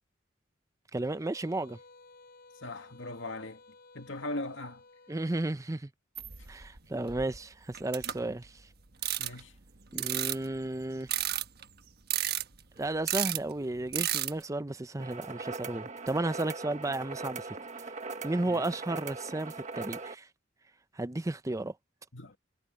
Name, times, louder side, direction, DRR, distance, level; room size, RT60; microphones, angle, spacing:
sound 1, 0.9-5.5, left 3 dB, 50° left, 6.8 m, -56 dB
voice 1, 0.9-1.8 5.1-5.9 6.5-8.5 9.9-11.1 12.8-17.6 18.2-20.3 21.0-21.7, right 2 dB, 15° right, 0.6 m, -33 dB
voice 2, 2.6-3.6 3.9-4.8 9.2-9.5 18.4-18.7 22.1-22.4, left 2 dB, 75° left, 2.1 m, -39 dB
sound 2, 6.1-6.8 7.1-7.4 7.7-8.5 9.0-9.4 9.9-10.6 11.1-11.6 12.1-12.8 13.1-13.4 13.9-14.4, right 12 dB, 55° right, 1.2 m, -32 dB
sound 3, 15.0-20.1, right 4 dB, 40° right, 1.6 m, -40 dB
head